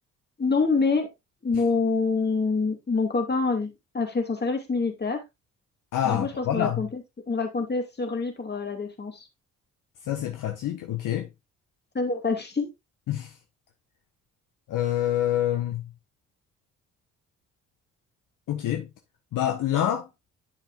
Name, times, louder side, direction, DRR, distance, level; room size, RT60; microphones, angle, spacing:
voice 1, 0.4-1.1 1.4-5.2 6.1-7.0 7.3-9.3 11.9-12.7, left 4 dB, 25° left, 2.5 m, -26 dB
voice 2, 5.9-6.9 10.1-11.3 13.1-13.3 14.7-15.9 18.5-18.9 19.3-20.1, left 11 dB, 55° left, 1.3 m, -26 dB
10.5 x 5.9 x 2.5 m
figure-of-eight pair, 45°, 39 cm